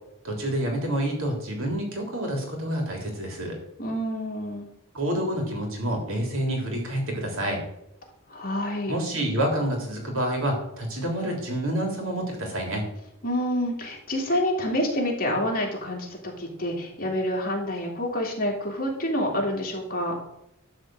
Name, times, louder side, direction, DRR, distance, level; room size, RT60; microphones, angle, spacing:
voice 1, 0.2-3.6 4.9-7.6 8.9-12.8, right 1 dB, 60° right, 1 dB, 3.4 m, -28 dB
voice 2, 3.8-4.7 8.3-8.9 13.2-20.2, left 1 dB, 40° left, -1 dB, 3.0 m, -28 dB
12.0 x 4.8 x 7.7 m, 0.84 s
head